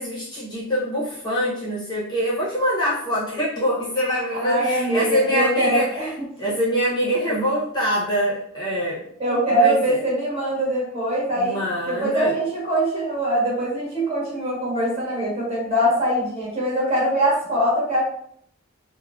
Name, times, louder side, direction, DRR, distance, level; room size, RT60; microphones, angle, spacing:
voice 1, 0.0-6.0 6.4-9.1 9.5-10.0 11.4-12.4, equal, 20° left, -7 dB, 0.7 m, -24 dB
voice 2, 4.4-6.3 9.2-11.6 11.9-18.0, right 1 dB, 30° right, -6 dB, 1.1 m, -22 dB
3.5 x 2.1 x 2.4 m, 0.65 s
head